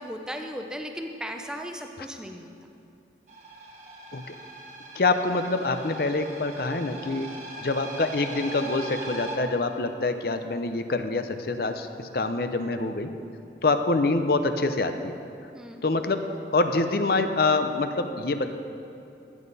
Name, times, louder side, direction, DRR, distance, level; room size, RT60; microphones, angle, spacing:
voice 1, 0.0-2.5 15.5-15.8, equal, 5° right, 4 dB, 0.7 m, -36 dB
sound 1, 3.3-9.4, right 2 dB, 40° right, 1.6 m, -40 dB
voice 2, 4.9-7.3 7.6-13.1 13.6-15.2 15.8-18.5, left 3 dB, 55° left, 8 dB, 0.6 m, -26 dB
14.5 x 9.7 x 4.1 m, 2.6 s
head